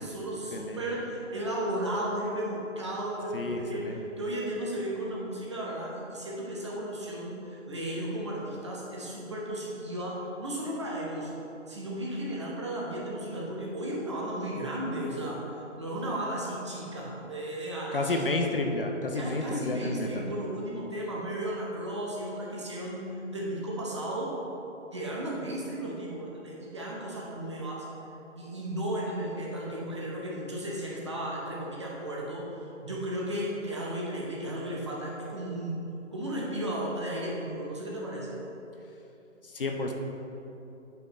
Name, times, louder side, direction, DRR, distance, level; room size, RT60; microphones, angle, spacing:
voice 1, 0.0-11.3 11.7-15.4 15.8-18.1 19.1-23.1 23.3-24.3 24.9-27.9 28.4-32.5 32.8-38.4, right 1 dB, 25° right, -4 dB, 0.8 m, -34 dB
voice 2, 3.3-4.0 17.9-20.3 39.5-39.9, left 2 dB, 45° left, 3 dB, 0.7 m, -30 dB
9.1 x 5.8 x 4.1 m, 3.0 s
hypercardioid pair, 170°, 38 cm